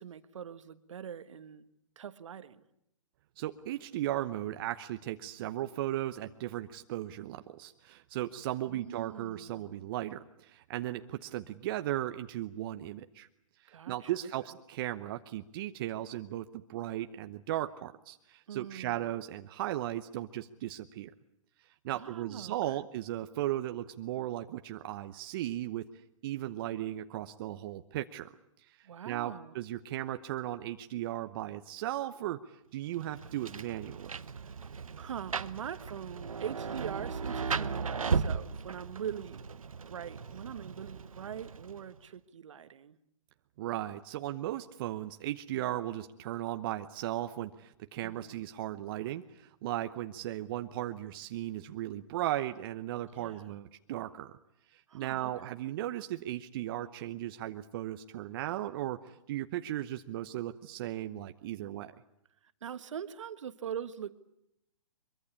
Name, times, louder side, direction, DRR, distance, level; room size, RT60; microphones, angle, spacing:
voice 1, 0.0-1.7 2.0-2.6 8.7-9.8 13.7-14.3 18.5-19.1 21.9-22.9 28.8-29.5 34.4-34.5 35.0-39.4 39.9-43.0 48.0-48.4 53.2-53.6 54.9-55.6 62.4-64.2, right 8 dB, 65° right, 13 dB, 1.4 m, -43 dB
voice 2, 3.4-13.3 13.6-21.1 21.8-25.9 26.2-28.3 28.7-34.1 43.6-54.3 54.7-61.9, right 13 dB, 40° right, 8 dB, 0.9 m, -36 dB
Rain, 32.9-42.0, right 5 dB, 85° right, 1.0 m, -36 dB
23.0 x 23.0 x 8.4 m, 0.80 s
hypercardioid pair, 130°, 17 cm